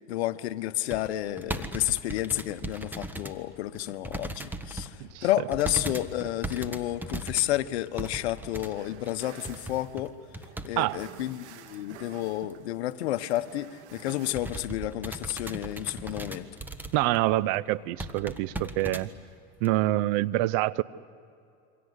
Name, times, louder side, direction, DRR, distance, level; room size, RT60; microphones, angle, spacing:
voice 1, 0.1-4.9 5.2-10.1 10.6-16.5, left 14 dB, 75° left, 1.2 m, -31 dB
sound 1, 0.9-3.4 3.8-4.9 5.5-10.8 11.0-11.1 11.7-12.0 12.4-12.5 12.8-12.9 13.3-13.5 13.9-17.2 17.5-17.6 18.0-19.1 19.7-19.8, right 1 dB, 5° right, 1.6 m, -38 dB
sound 2, 6.7-14.4, right 10 dB, 85° right, 1.9 m, -52 dB
voice 2, 16.9-19.1 19.6-20.8, right 17 dB, 55° right, 0.8 m, -26 dB
28.5 x 24.5 x 8.2 m
supercardioid pair, 115°, 33 cm